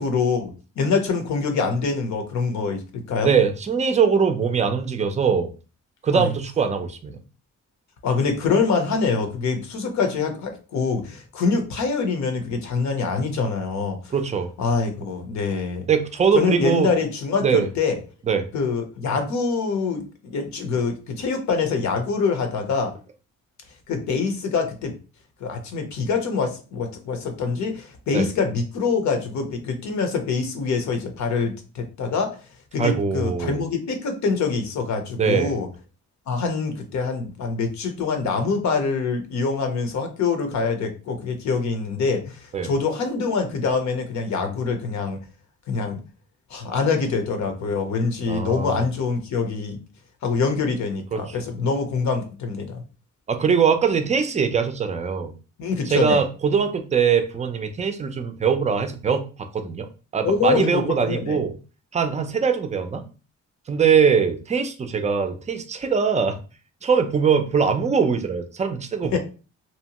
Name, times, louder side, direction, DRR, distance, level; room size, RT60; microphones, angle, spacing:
voice 1, 0.0-3.3 6.1-6.3 8.0-14.0 14.6-15.9 16.3-18.0 18.5-22.9 23.9-24.9 25.4-32.3 32.7-35.7 36.3-45.2 45.7-46.0 46.5-49.8 50.2-52.8 55.6-56.2 60.2-61.4 69.1-69.2, left 4 dB, 70° left, 5 dB, 0.8 m, -25 dB
voice 2, 3.2-5.5 6.0-7.2 14.1-14.5 15.9-16.9 17.4-17.7 18.3-18.5 28.1-28.3 32.8-33.6 35.2-35.6 42.5-42.7 48.3-48.8 51.1-51.2 53.3-55.4 55.9-59.9 60.1-61.5 61.9-63.0 63.7-66.4 66.8-69.2, right 6 dB, 25° right, 7 dB, 0.4 m, -22 dB
2.7 x 2.1 x 2.9 m, 0.34 s
cardioid pair, 90°, 30 cm